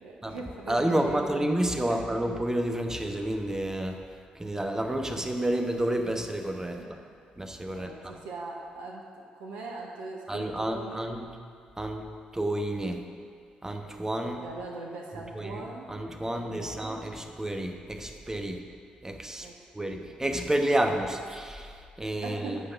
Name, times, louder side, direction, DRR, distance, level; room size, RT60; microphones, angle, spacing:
voice 1, 0.0-1.5 1.9-2.0 6.8-7.1 7.7-9.0 9.3-11.0 14.2-15.9 16.3-17.1 19.4-20.1 22.2-22.6, right 3 dB, 65° right, -1 dB, 0.8 m, -41 dB
voice 2, 0.7-4.0 4.3-7.0 7.4-8.1 10.3-11.3 11.8-12.1 12.3-13.0 13.6-14.4 15.3-18.6 19.0-19.5 19.7-22.6, right 1 dB, 15° right, 4 dB, 1.0 m, -30 dB
8.1 x 5.2 x 7.0 m, 2.1 s
figure-of-eight pair, 40°, 4 cm